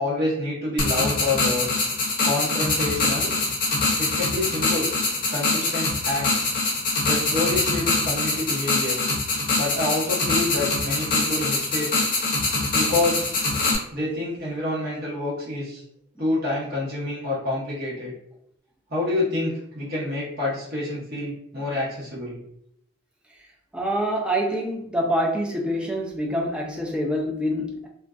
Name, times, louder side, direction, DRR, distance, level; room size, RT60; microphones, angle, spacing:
voice 1, 0.0-1.7 2.2-3.3 4.0-4.9 5.3-6.5 7.0-9.0 9.6-11.9 12.7-13.3 13.9-15.8 16.2-18.1 18.9-22.4, left 2 dB, 45° right, -7 dB, 1.0 m, -27 dB
sound 1, 0.8-13.8, left 3 dB, 40° left, 0.6 m, -24 dB
voice 2, 23.7-27.9, equal, 5° right, 0 dB, 0.3 m, -26 dB
2.4 x 2.2 x 2.3 m, 0.74 s
head